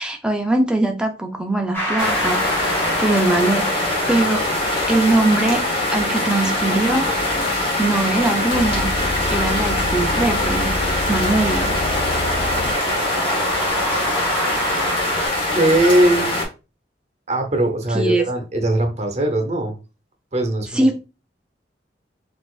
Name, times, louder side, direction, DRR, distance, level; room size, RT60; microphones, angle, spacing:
voice 1, 0.0-2.7 3.0-4.5 4.9-5.7 5.9-7.1 7.8-8.9 9.3-10.7 11.1-11.7 17.9-18.2 20.7-21.0, right 2 dB, 5° right, 0.5 m, -21 dB
sound 1, 1.7-15.3, right 1 dB, 15° left, 1.3 m, -30 dB
sound 2, 2.0-16.4, left 1 dB, 30° left, 1.0 m, -22 dB
sound 3, 8.5-12.7 13.7-13.8, left 2 dB, 55° left, 0.4 m, -28 dB
voice 2, 15.5-16.3 17.3-19.7 20.3-21.0, right 1 dB, 40° right, 0.8 m, -20 dB
4.1 x 2.6 x 2.4 m
head